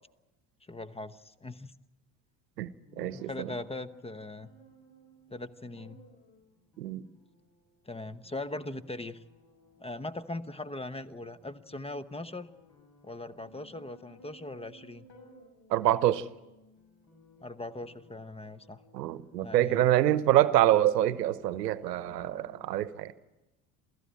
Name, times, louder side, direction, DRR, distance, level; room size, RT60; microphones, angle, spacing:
voice 1, 0.7-1.7 3.0-4.5 5.3-6.0 7.8-9.2 9.8-12.5 13.0-15.1 17.4-18.8 19.4-19.9, left 2 dB, 10° left, 1.0 m, -40 dB
sound 1, 2.9-22.7, left 1 dB, 55° left, 6.7 m, -58 dB
voice 2, 3.0-3.5 6.8-7.0 15.7-16.2 18.9-23.1, right 13 dB, 75° right, 1.0 m, -26 dB
28.0 x 16.5 x 8.9 m
figure-of-eight pair, 60°, 49 cm